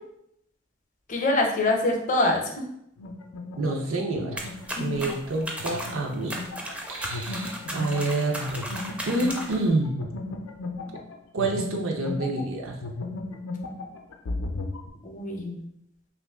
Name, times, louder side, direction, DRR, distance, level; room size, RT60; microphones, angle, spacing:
voice 1, 1.1-2.6 4.7-5.0 15.0-15.6, left 2 dB, 40° left, 2 dB, 0.6 m, -25 dB
sound 1, 3.0-12.5 12.8-14.9, left 2 dB, 85° left, 0.4 m, -36 dB
voice 2, 3.6-4.5 4.8-6.4 6.9-8.6 9.1-10.0 11.3-12.8, right 2 dB, 90° right, 2 dB, 0.6 m, -28 dB
sound 2, 4.4-9.7, right 1 dB, 5° right, 0.4 m, -36 dB
3.0 x 2.4 x 3.4 m, 0.73 s
head